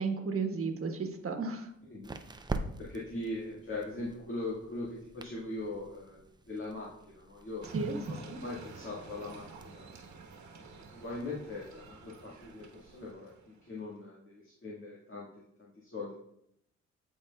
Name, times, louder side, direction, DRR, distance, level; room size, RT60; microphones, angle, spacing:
voice 1, 0.0-1.7 7.7-8.4, right 4 dB, 50° right, 3 dB, 1.4 m, -34 dB
sound 1, 0.7-13.1, right 2 dB, 15° right, 0.6 m, -47 dB
voice 2, 2.8-7.7 8.0-9.9 10.6-15.3 15.6-16.1, left 2 dB, 40° left, -6 dB, 2.0 m, -41 dB
sound 2, 7.6-13.9, right 4 dB, 70° right, 1.4 m, -51 dB
11.5 x 4.2 x 2.4 m, 0.75 s
supercardioid pair, 60°, 30 cm